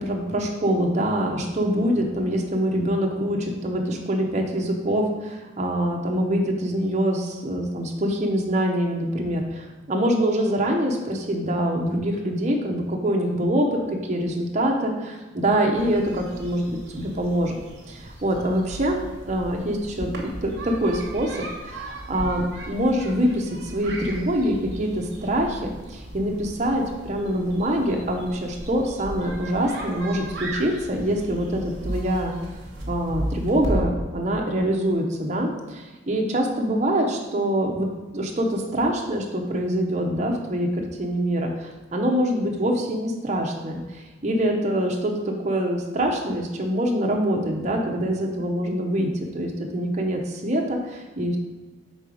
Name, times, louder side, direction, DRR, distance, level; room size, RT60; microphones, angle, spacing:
voice 1, 0.0-17.6 17.9-19.0 19.3-21.4 21.6-32.3 32.9-37.9 38.1-51.4, equal, 35° right, 1 dB, 0.7 m, -25 dB
sound 1, 15.7-33.8, right 1 dB, 60° right, 1.2 m, -36 dB
5.4 x 3.8 x 4.9 m, 1.2 s
head